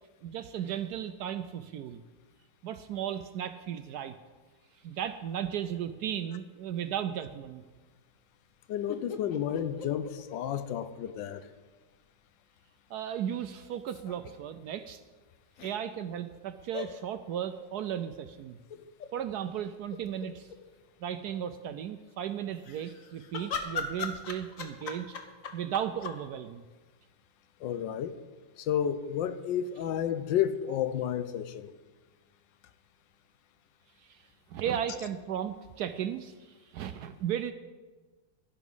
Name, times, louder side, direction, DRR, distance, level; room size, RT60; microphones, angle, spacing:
voice 1, 0.2-2.0 2.6-4.2 4.8-7.6 12.9-15.0 15.6-18.6 19.1-20.5 21.0-25.2 25.5-26.6 34.0-37.5, right 9 dB, 70° right, 1.0 m, -35 dB
voice 2, 8.7-11.5 27.6-28.2 28.6-31.7, left 9 dB, 75° left, 1.4 m, -31 dB
sound 1, 8.9-11.1 11.4-11.5 13.6-14.3 15.6-15.7 16.7-16.9 18.7-19.1 19.6-19.7 19.9-20.6 22.5-26.2, left 5 dB, 50° left, 1.3 m, -39 dB
12.0 x 11.0 x 5.5 m
omnidirectional pair, 2.0 m